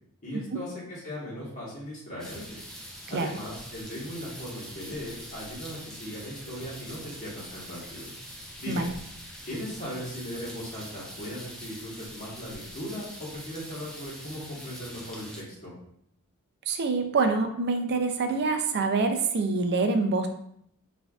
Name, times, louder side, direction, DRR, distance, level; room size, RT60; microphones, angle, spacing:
voice 1, 0.2-2.6 3.1-8.1 8.6-8.8 9.4-15.7, equal, 35° left, -7 dB, 1.3 m, -38 dB
sound 1, 2.2-15.4, equal, 5° left, 0.5 m, -44 dB
voice 2, 16.7-20.3, right 3 dB, 50° right, 6 dB, 0.4 m, -26 dB
4.2 x 2.6 x 2.3 m, 0.71 s
head